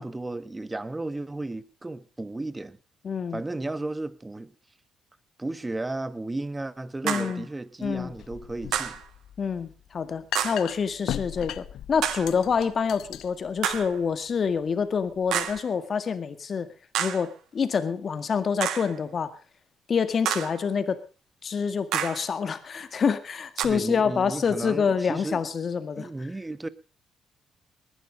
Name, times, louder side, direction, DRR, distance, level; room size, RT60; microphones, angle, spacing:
voice 1, 0.0-2.8 3.3-4.5 5.4-9.0 23.6-25.4 26.0-26.7, right 2 dB, 15° right, 1.2 m, -34 dB
voice 2, 3.0-3.4 7.0-7.5 7.8-8.1 9.4-16.7 17.0-19.3 19.9-21.0 21.4-26.1, left 6 dB, 45° left, 1.9 m, -27 dB
sound 1, 7.1-7.4 8.7-9.1 10.3-10.7 12.0-12.4 13.6-14.0 15.3-15.7 16.9-17.3 18.6-19.0 20.3-20.6 21.9-22.3 23.6-23.7, right 10 dB, 80° right, 1.5 m, -29 dB
sound 2, 7.8-15.6, left 11 dB, 80° left, 0.7 m, -39 dB
20.0 x 11.0 x 5.1 m
cardioid pair, 90°, 0 cm